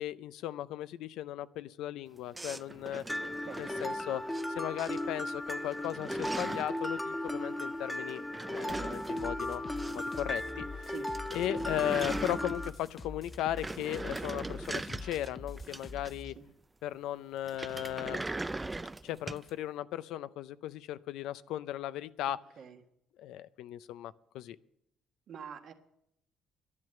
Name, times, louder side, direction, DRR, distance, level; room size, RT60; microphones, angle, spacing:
voice 1, 0.0-3.0 3.6-4.2 4.5-8.2 8.5-10.6 11.3-16.3 16.8-18.2 19.0-22.4 23.2-24.6, left 12 dB, 80° left, 15 dB, 0.5 m, -37 dB
sound 1, 2.3-4.4 4.8-5.3 5.6-6.8 8.1-10.2 10.5-10.6 10.9-11.0 11.1-12.9 13.3-16.4 17.4-19.5, right 2 dB, 15° right, 0.4 m, -40 dB
Mallet percussion, 3.1-12.7, left 1 dB, 10° left, 1.3 m, -36 dB
voice 2, 3.4-3.8 10.9-11.1 16.4-16.5 22.6-22.8 25.3-25.7, right 7 dB, 60° right, 5 dB, 1.5 m, -45 dB
sound 2, 8.7-16.3, left 4 dB, 35° left, 0.8 m, -46 dB
11.0 x 10.5 x 7.8 m, 0.77 s
cardioid pair, 85°, 0 cm